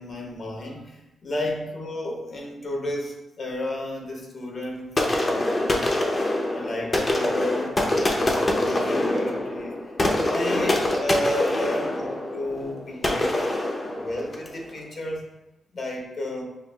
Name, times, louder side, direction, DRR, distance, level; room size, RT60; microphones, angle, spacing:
voice 1, 0.0-4.9 5.2-5.8 6.5-10.0 10.3-13.5 13.8-15.2 15.7-16.4, left 1 dB, 50° left, 0 dB, 0.9 m, -32 dB
sound 1, 5.0-14.6, left 1 dB, 30° left, 0.6 m, -25 dB
6.2 x 2.4 x 2.3 m, 0.94 s
cardioid pair, 90°, 0 cm